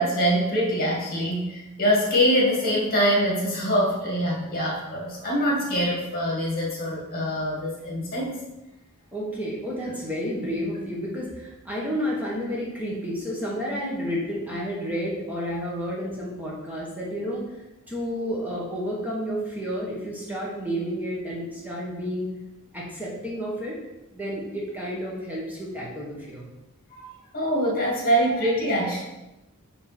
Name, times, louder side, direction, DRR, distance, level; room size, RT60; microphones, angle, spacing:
voice 1, 0.0-8.3 26.9-27.1 27.3-29.0, equal, 45° left, -3 dB, 2.2 m, -24 dB
voice 2, 9.1-17.4 17.9-22.3 22.7-23.8 24.1-26.5, equal, 10° right, -5 dB, 1.3 m, -31 dB
5.9 x 5.3 x 4.4 m, 0.99 s
head